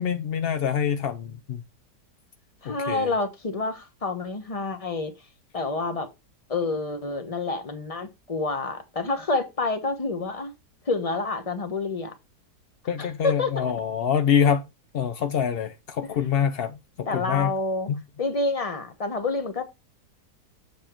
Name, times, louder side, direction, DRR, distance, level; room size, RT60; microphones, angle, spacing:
voice 1, 0.0-1.6 2.7-3.1 12.9-14.6 14.9-17.5 17.9-18.0, left 7 dB, 80° left, 0.5 m, -25 dB
voice 2, 2.6-5.1 5.5-6.1 6.5-10.5 10.9-12.1 13.0-13.6 17.1-17.9 18.2-19.6, left 3 dB, 25° left, 1.0 m, -28 dB
7.4 x 4.5 x 4.4 m
omnidirectional pair, 1.8 m